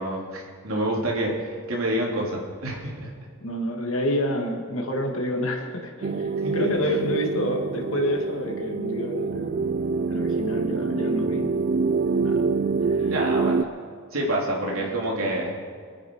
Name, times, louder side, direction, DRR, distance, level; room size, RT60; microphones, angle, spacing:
voice 1, 0.0-3.1 6.4-6.9 13.1-13.7 14.1-15.7, right 1 dB, 85° right, -3 dB, 3.5 m, -28 dB
voice 2, 3.4-9.7 10.1-11.6 12.2-12.5 12.9-13.1 14.9-15.0, left 1 dB, 75° left, 1 dB, 2.4 m, -28 dB
sound 1, 6.0-13.6, right 4 dB, 40° right, 0.4 m, -26 dB
24.0 x 9.3 x 4.9 m, 2.1 s
head